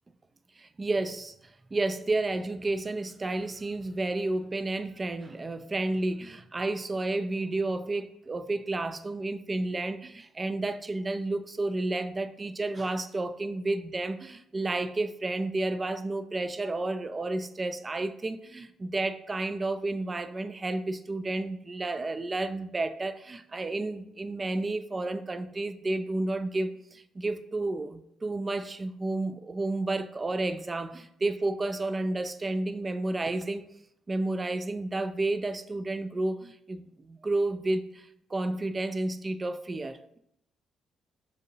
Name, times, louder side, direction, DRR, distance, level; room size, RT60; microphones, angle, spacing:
voice 1, 0.6-1.3 1.7-33.6 34.1-40.2, right 2 dB, 25° right, 0.3 m, -31 dB
5.4 x 2.7 x 2.6 m
cardioid pair, 90°, 0 cm